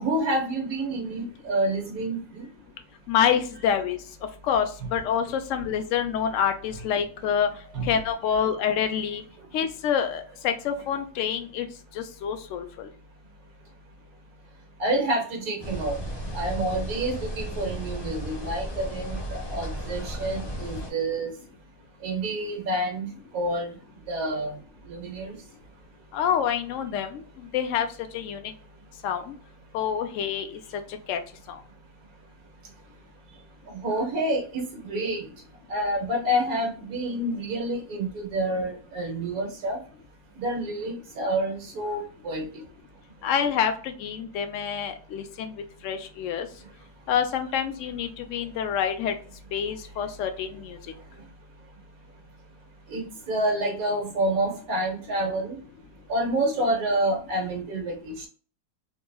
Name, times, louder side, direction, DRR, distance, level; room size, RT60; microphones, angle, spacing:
voice 1, 0.0-2.5 4.8-4.9 7.7-7.9 14.8-15.9 16.3-21.3 22.0-23.7 24.1-24.6 24.9-25.4 33.8-35.3 35.7-39.8 40.4-42.5 52.9-55.6 56.1-58.3, right 1 dB, 65° right, 2 dB, 1.5 m, -28 dB
voice 2, 3.1-4.0 4.5-7.5 7.8-9.2 9.5-11.7 11.9-12.9 26.1-27.9 28.1-28.5 29.0-29.3 29.7-30.6 31.1-31.2 31.5-31.6 43.2-45.5 45.8-46.5 47.1-49.1 49.5-50.8, left 8 dB, 65° left, 6 dB, 0.8 m, -27 dB
sound 1, 15.6-20.9, equal, 20° left, 0.9 m, -34 dB
3.8 x 2.8 x 2.3 m, 0.41 s
omnidirectional pair, 1.7 m